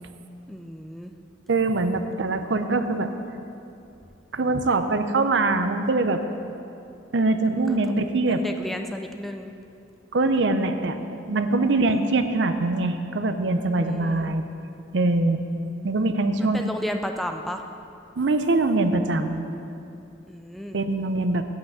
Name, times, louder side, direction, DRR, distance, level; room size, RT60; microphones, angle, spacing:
voice 1, 0.5-1.1 7.4-9.5 11.8-11.9 13.8-14.3 16.4-17.6 20.3-20.8, equal, ahead, 5 dB, 0.3 m, -34 dB
voice 2, 1.5-3.1 4.3-6.2 7.1-8.4 10.1-14.4 14.9-15.4 15.8-16.6 18.2-19.5 20.7-21.4, right 2 dB, 65° right, 8 dB, 0.6 m, -23 dB
8.1 x 5.7 x 7.8 m, 2.6 s
head